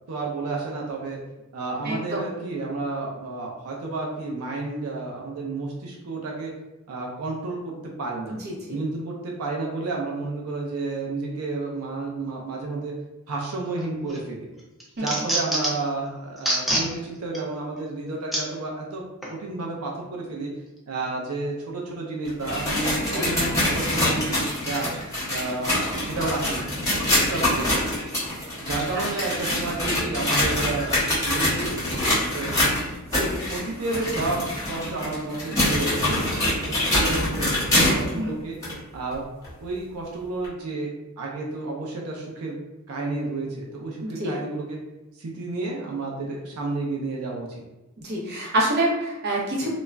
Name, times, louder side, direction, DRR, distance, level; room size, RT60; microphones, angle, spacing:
voice 1, 0.1-1.2 1.5-6.5 6.9-7.7 8.0-8.4 8.7-12.9 13.3-14.5 15.0-19.0 19.3-20.5 20.9-24.9 25.3-26.7 27.1-27.8 28.6-32.5 33.5-36.0 36.6-37.6 37.9-38.6 38.9-39.2 39.6-40.9 41.2-42.6 42.9-44.8 45.1-47.6, right 3 dB, 85° right, -1 dB, 0.5 m, -31 dB
voice 2, 1.8-2.3 8.4-8.8 15.0-15.1 23.0-23.3 27.0-27.2 33.2-33.6 38.1-38.3 44.0-44.3 48.0-49.7, right 1 dB, 50° right, -4 dB, 0.7 m, -27 dB
sound 1, 13.8-14.2 14.6-15.9 16.4-16.9 17.3-17.4 18.3-18.4 19.2-19.3, right 1 dB, ahead, 0.4 m, -25 dB
sound 2, 22.2-38.1 38.6-38.7 39.4-39.5 40.4-40.5, left 1 dB, 15° left, 1.1 m, -25 dB
2.3 x 2.0 x 3.2 m, 1.0 s
head